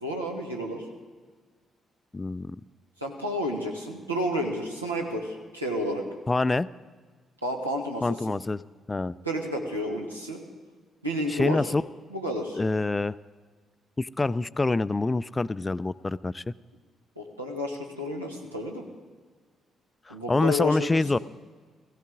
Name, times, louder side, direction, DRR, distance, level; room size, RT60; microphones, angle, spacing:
voice 1, 0.0-0.9 3.0-6.1 7.4-8.4 9.2-10.4 11.0-11.6 12.1-12.6 17.2-18.9 20.1-21.0, equal, 85° right, 0 dB, 1.3 m, -31 dB
voice 2, 2.1-2.6 6.3-6.7 8.0-8.6 8.9-9.1 11.3-11.8 12.6-13.1 14.0-16.5 20.1-21.2, left 3 dB, 20° left, 18 dB, 0.3 m, -26 dB
18.0 x 15.5 x 3.7 m, 1.5 s
figure-of-eight pair, 40°, 0 cm